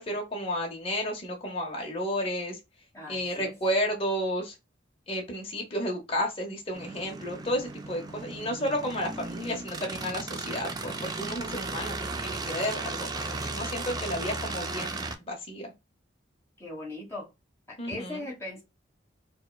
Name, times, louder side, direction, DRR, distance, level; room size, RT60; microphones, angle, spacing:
voice 1, 0.0-2.6 3.1-4.6 5.1-15.7 17.8-18.2, equal, 30° left, 0.7 m, -32 dB
voice 2, 2.9-3.5 13.9-14.2 16.6-17.3 17.7-18.6, left 2 dB, 15° left, 1.3 m, -39 dB
sound 1, 6.7-15.2, right 3 dB, 20° right, 0.4 m, -36 dB
4.7 x 2.1 x 2.2 m
head